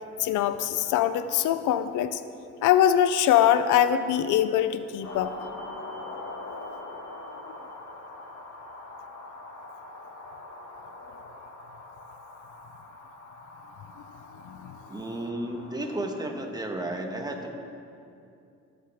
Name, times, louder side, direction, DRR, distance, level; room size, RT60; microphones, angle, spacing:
voice 1, 0.2-2.2 2.6-5.3 7.5-7.6 14.4-14.8, left 10 dB, 85° left, 12 dB, 0.5 m, -23 dB
sound 1, 5.0-16.1, left 2 dB, 60° left, 1.8 m, -43 dB
voice 2, 14.9-17.5, right 1 dB, 15° right, 2 dB, 1.3 m, -33 dB
15.5 x 8.0 x 3.5 m, 2.6 s
cardioid pair, 90°, 30 cm